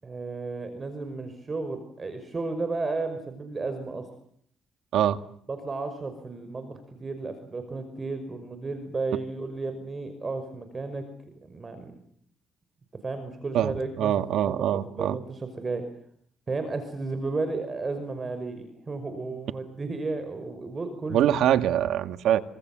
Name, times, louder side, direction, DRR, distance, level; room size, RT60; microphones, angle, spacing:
voice 1, 0.0-4.1 5.5-11.9 13.0-15.8 16.5-21.4 22.3-22.4, right 3 dB, 30° right, 8 dB, 5.6 m, -33 dB
voice 2, 13.5-15.2 21.1-22.4, right 11 dB, 80° right, 11 dB, 1.8 m, -24 dB
27.0 x 26.0 x 7.5 m, 0.64 s
cardioid pair, 90°, 0 cm